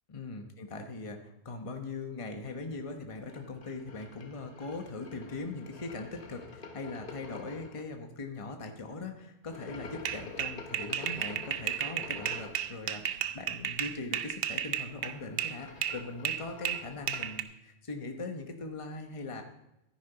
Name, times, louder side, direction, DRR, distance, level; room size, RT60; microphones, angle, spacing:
voice 1, 0.1-19.4, left 3 dB, 30° left, 4 dB, 1.1 m, -40 dB
sound 1, 3.3-7.8 9.4-12.7 14.8-17.4, left 4 dB, 50° left, 1.3 m, -48 dB
sound 2, 10.0-15.6 15.8-17.4, right 10 dB, 65° right, 0.8 m, -33 dB
13.5 x 10.5 x 4.0 m, 0.88 s
omnidirectional pair, 1.1 m